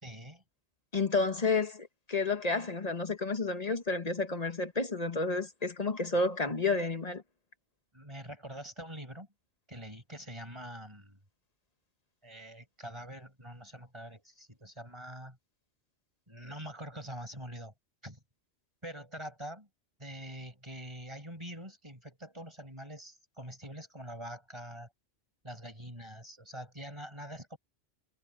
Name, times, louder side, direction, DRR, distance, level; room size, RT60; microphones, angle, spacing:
voice 1, 0.0-0.4 6.1-6.5 7.9-9.3 9.7-11.2 12.2-15.4 16.3-17.7 18.0-18.2 18.8-19.7 20.0-24.9 25.4-27.6, right 1 dB, 25° right, 6.1 m, -45 dB
voice 2, 0.9-7.2, left 3 dB, 35° left, 1.4 m, -31 dB
omnidirectional pair, 1.2 m